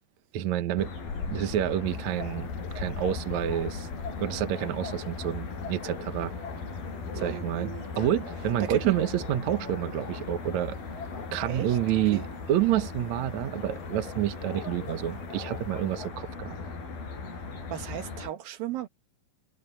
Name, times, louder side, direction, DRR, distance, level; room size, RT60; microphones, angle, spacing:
voice 1, 0.3-0.9 1.3-2.5 2.8-3.9 4.2-6.3 7.2-7.7 8.0-10.8 11.3-12.2 12.5-16.6, right 11 dB, 65° right, 2.2 m, -28 dB
sound 1, 0.8-18.3, left 4 dB, 90° left, 7.4 m, -38 dB
sound 2, 1.9-16.1, left 5 dB, 55° left, 3.9 m, -45 dB
voice 2, 7.1-7.8 8.6-8.9 11.5-11.8 12.1-12.3 17.7-18.9, right 13 dB, 80° right, 3.1 m, -35 dB
omnidirectional pair, 4.1 m